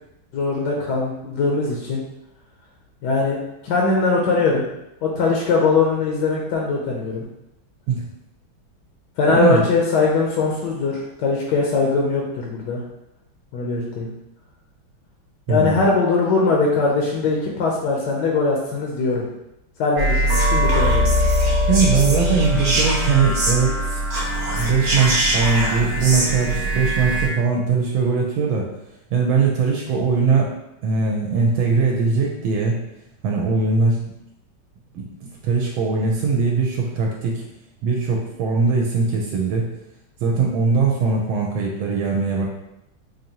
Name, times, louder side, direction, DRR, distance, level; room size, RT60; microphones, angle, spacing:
voice 1, 0.3-2.0 3.0-3.4 3.6-4.7 5.0-7.3 9.2-12.8 13.5-14.1 15.5-19.3 19.8-21.1, left 3 dB, 70° left, -2 dB, 1.1 m, -21 dB
voice 2, 9.3-9.6 15.5-15.9 21.7-24.0 24.5-28.7 29.1-30.5 30.8-32.8 33.2-34.0 34.9-37.4 37.8-39.7 40.2-42.4, right 4 dB, 80° right, -1 dB, 1.3 m, -20 dB
sound 1, 20.0-27.3, equal, 60° right, 1.0 m, -21 dB
4.4 x 2.6 x 2.8 m, 0.86 s
omnidirectional pair, 2.2 m